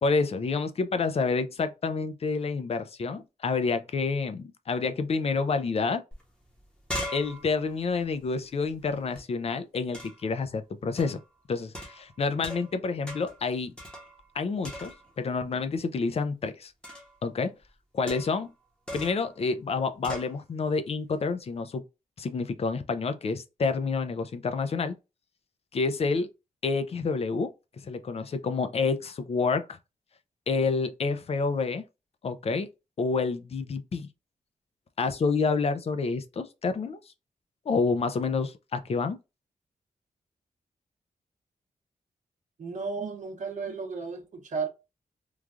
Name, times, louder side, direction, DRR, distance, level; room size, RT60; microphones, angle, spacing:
voice 1, 0.0-6.0 7.1-11.2 11.5-13.7 14.3-16.7 17.2-17.5 17.9-18.5 18.9-21.8 22.2-25.0 25.7-26.3 26.6-27.5 27.8-29.8 30.5-31.8 32.2-32.7 33.0-34.1 35.0-37.0 37.7-39.2, left 4 dB, 45° left, 0.4 m, -28 dB
sound 1, 6.1-6.2 6.5-9.2 9.9-10.3 11.0-11.3 11.7-12.8 13.1-13.4 13.8-14.4 14.6-15.2 16.8-17.2 18.1-18.5 18.9-19.3 20.0-20.3, equal, 5° left, 0.9 m, -40 dB
voice 2, 42.6-44.7, right 5 dB, 60° right, 0.8 m, -34 dB
3.1 x 2.3 x 2.4 m
wide cardioid pair, 115°, 14 cm